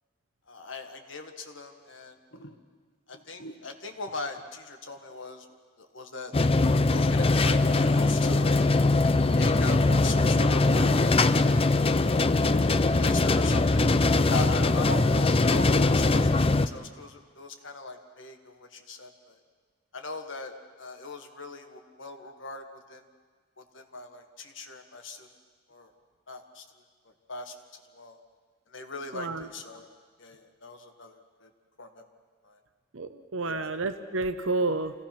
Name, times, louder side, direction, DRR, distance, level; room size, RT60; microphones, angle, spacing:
voice 1, 0.5-2.6 3.1-8.6 9.4-11.0 11.2-11.6 12.7-19.4 19.9-23.0 23.6-25.3 25.7-25.9 26.3-26.6 27.0-28.2 28.7-29.9 30.2-31.5 31.8-32.0 32.4-32.6 33.4-33.7, left 3 dB, 70° left, 5 dB, 1.7 m, -40 dB
sound 1, 6.3-16.7, left 2 dB, 30° left, 0.5 m, -22 dB
voice 2, 29.1-29.5 32.9-34.9, right 2 dB, 90° right, 9 dB, 0.8 m, -30 dB
26.5 x 17.0 x 6.0 m, 1.6 s
head